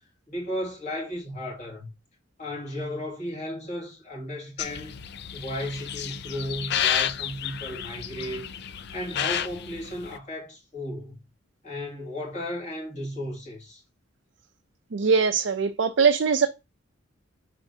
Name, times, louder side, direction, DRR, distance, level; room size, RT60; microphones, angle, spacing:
voice 1, 0.3-1.9 2.4-5.0 5.3-8.5 8.9-11.2 11.6-13.8, left 1 dB, 40° left, 2.6 m, -34 dB
sound 1, 4.6-10.2, left 9 dB, 55° left, 0.4 m, -31 dB
voice 2, 14.9-16.5, right 5 dB, 65° right, 0.5 m, -21 dB
6.8 x 5.0 x 2.8 m
head